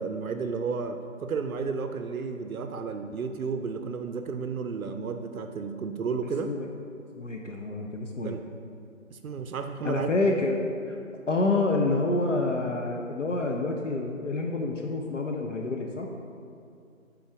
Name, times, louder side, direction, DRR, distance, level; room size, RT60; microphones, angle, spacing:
voice 1, 0.0-6.5 8.2-8.4 9.1-10.1, right 5 dB, 90° right, 7 dB, 0.6 m, -32 dB
voice 2, 7.2-8.4 9.8-10.6 10.9-11.0 11.3-16.1, left 2 dB, 65° left, 1 dB, 0.6 m, -28 dB
7.0 x 3.8 x 4.7 m, 2.4 s
figure-of-eight pair, 175°, 41 cm